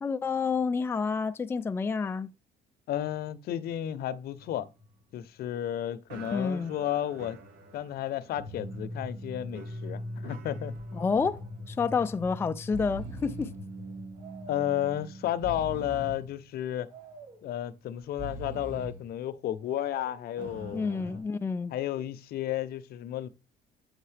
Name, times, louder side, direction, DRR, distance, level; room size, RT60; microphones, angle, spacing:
voice 1, 0.0-2.3 6.3-6.7 10.9-11.4 11.7-13.5 20.7-21.7, left 5 dB, 15° left, 0.3 m, -29 dB
voice 2, 2.9-4.7 5.1-7.4 7.7-10.7 14.5-16.9 17.4-20.8 21.7-23.3, left 11 dB, 65° left, 0.7 m, -32 dB
sound 1, 4.3-5.7 6.1-16.5 16.8-17.0 17.6-17.7 20.4-21.2, equal, 80° right, 1.9 m, -42 dB
Breathing, 10.5-10.8 11.2-11.3 12.1-12.3 12.6-13.6 14.2-14.8 15.3-16.3 16.9-17.5 18.0-19.0 19.6-20.3, right 1 dB, 50° right, 4.8 m, -42 dB
7.9 x 5.5 x 3.3 m
cardioid pair, 110°, 17 cm